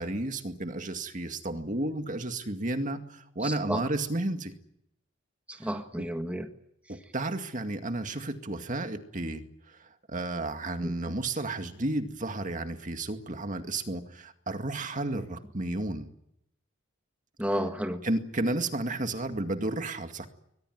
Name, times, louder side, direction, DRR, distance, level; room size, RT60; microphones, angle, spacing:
voice 1, 0.0-4.5 5.6-5.7 6.0-6.1 6.9-16.1 18.0-20.3, right 2 dB, 40° right, 6 dB, 2.1 m, -32 dB
voice 2, 3.4-3.9 5.5-6.5 10.8-10.9 17.4-18.0, equal, 5° right, 5 dB, 1.7 m, -32 dB
22.5 x 21.0 x 9.4 m, 0.77 s
head